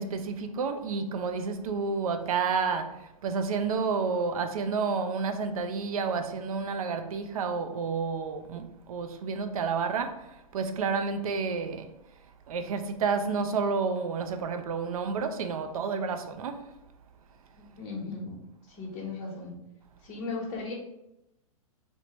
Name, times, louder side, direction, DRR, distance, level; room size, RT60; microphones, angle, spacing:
voice 1, 0.0-11.9 12.5-16.7, right 5 dB, 80° right, 0.4 m, -30 dB
voice 2, 17.6-18.4 18.8-19.5 20.0-20.7, left 4 dB, 35° left, 1.0 m, -36 dB
2.9 x 2.1 x 2.9 m
hypercardioid pair, 125°, 18 cm